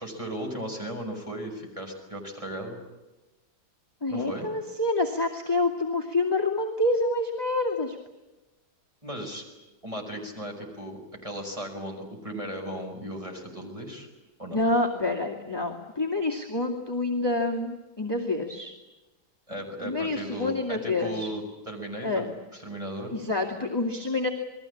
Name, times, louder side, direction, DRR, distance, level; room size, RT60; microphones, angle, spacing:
voice 1, 0.0-2.8 4.1-4.5 9.0-9.4 9.8-14.1 14.4-14.6 19.5-22.3 22.5-23.1, right 1 dB, 20° right, 2 dB, 6.3 m, -36 dB
voice 2, 4.0-8.0 14.5-18.7 19.8-21.3 22.0-22.3 23.1-24.3, left 2 dB, 15° left, -1 dB, 2.3 m, -27 dB
28.5 x 21.0 x 8.7 m, 1.1 s
omnidirectional pair, 1.8 m